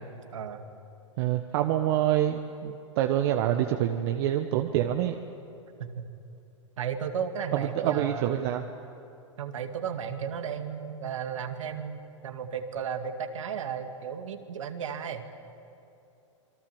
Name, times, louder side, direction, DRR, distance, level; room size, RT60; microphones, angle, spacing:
voice 1, 0.3-0.6 3.5-3.7 5.8-6.0 6.8-8.5 9.4-15.3, right 7 dB, 75° right, 6 dB, 2.3 m, -34 dB
voice 2, 1.2-5.1 7.5-8.6, right 12 dB, 50° right, 5 dB, 1.3 m, -26 dB
27.5 x 22.0 x 7.2 m, 2.8 s
hypercardioid pair, 115°, 17 cm